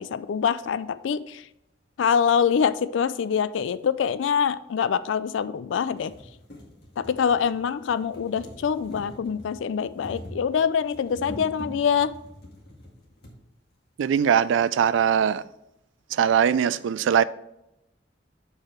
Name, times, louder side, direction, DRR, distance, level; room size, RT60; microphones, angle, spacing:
voice 1, 0.0-1.4 2.0-6.1 7.0-12.1, left 7 dB, 85° left, 0.3 m, -25 dB
sound 1, 3.8-3.9 4.9-5.0 5.4-5.5 5.8-13.4 14.3-14.4 14.6-14.7, left 1 dB, 60° left, 1.8 m, -44 dB
voice 2, 14.0-15.4 16.1-17.2, right 8 dB, 85° right, 0.3 m, -21 dB
7.5 x 4.8 x 4.5 m
head